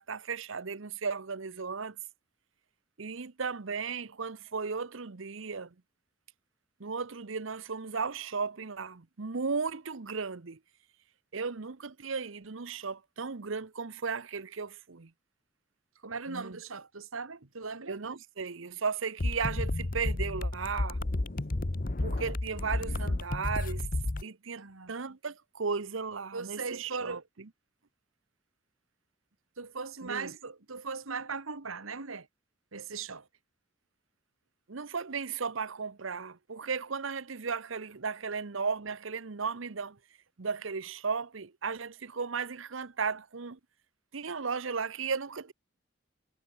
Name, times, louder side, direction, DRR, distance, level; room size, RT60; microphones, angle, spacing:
voice 1, 0.0-2.0 3.0-5.7 6.8-10.6 11.3-15.1 16.3-16.6 17.9-21.0 22.0-23.9 24.2-27.5 30.0-30.3 34.7-40.0 40.4-43.6 44.1-45.5, right 5 dB, 75° right, 0.9 m, -35 dB
voice 2, 16.0-18.0 24.6-24.9 26.3-27.2 29.6-32.3 32.7-33.3, right 4 dB, 90° right, 1.8 m, -39 dB
sound 1, 19.2-24.2, left 2 dB, 40° left, 0.9 m, -32 dB
head